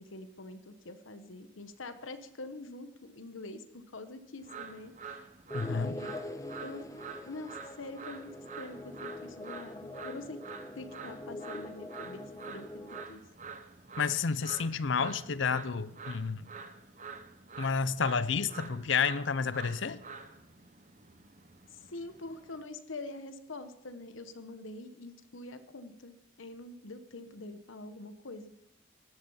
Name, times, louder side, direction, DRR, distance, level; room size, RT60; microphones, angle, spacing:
voice 1, 0.0-5.3 5.7-6.1 6.6-6.9 7.2-10.4 10.8-12.8 13.1-13.2 21.7-28.5, left 2 dB, 85° left, 1.1 m, -45 dB
sound 1, 4.4-22.6, right 5 dB, 40° right, 0.9 m, -47 dB
voice 2, 5.5-6.0 14.0-16.5 17.6-20.0, left 5 dB, 70° left, 0.7 m, -30 dB
sound 2, 5.5-13.0, left 2 dB, 15° left, 0.7 m, -44 dB
17.0 x 11.0 x 5.6 m
head